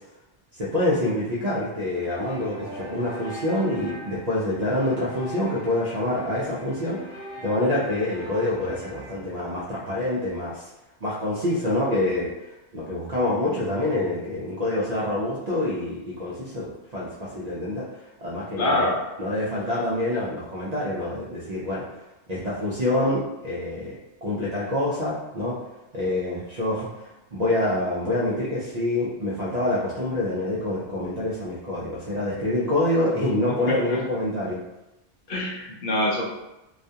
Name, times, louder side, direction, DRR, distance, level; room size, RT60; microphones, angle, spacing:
voice 1, 0.5-7.2 7.4-10.6 11.0-12.3 12.7-17.9 18.2-21.8 22.3-25.6 25.9-34.6, left 1 dB, 55° right, -7 dB, 0.4 m, -26 dB
sound 1, 1.9-9.1, equal, 10° left, 0.4 m, -41 dB
voice 2, 18.6-19.0 33.7-34.0 35.3-36.2, left 1 dB, 60° left, -4 dB, 0.6 m, -25 dB
2.3 x 2.2 x 2.7 m, 0.99 s
omnidirectional pair, 1.1 m